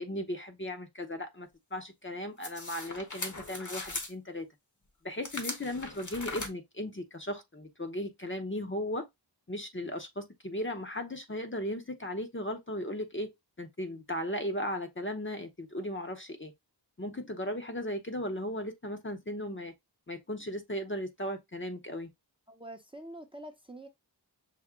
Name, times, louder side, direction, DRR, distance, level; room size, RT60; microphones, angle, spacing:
voice 1, 0.0-4.5 5.0-9.1 9.5-13.3 13.6-16.5 17.0-19.7 20.1-22.1, left 1 dB, 30° left, 0.7 m, -36 dB
sound 1, 2.4-4.1 5.2-6.5, left 2 dB, 45° left, 1.0 m, -39 dB
voice 2, 22.5-23.9, right 1 dB, 15° right, 0.7 m, -46 dB
5.8 x 2.1 x 3.6 m
wide cardioid pair, 50°, 41 cm